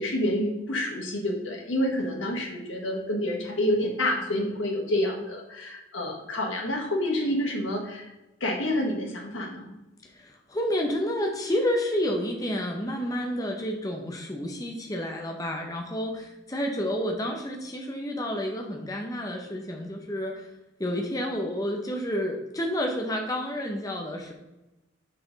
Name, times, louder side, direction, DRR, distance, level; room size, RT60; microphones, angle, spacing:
voice 1, 0.0-8.1 8.4-9.7, left 1 dB, 80° left, 0 dB, 1.7 m, -28 dB
voice 2, 10.1-20.5 20.8-24.3, equal, 20° left, 1 dB, 0.7 m, -30 dB
6.0 x 5.8 x 3.9 m, 0.99 s
head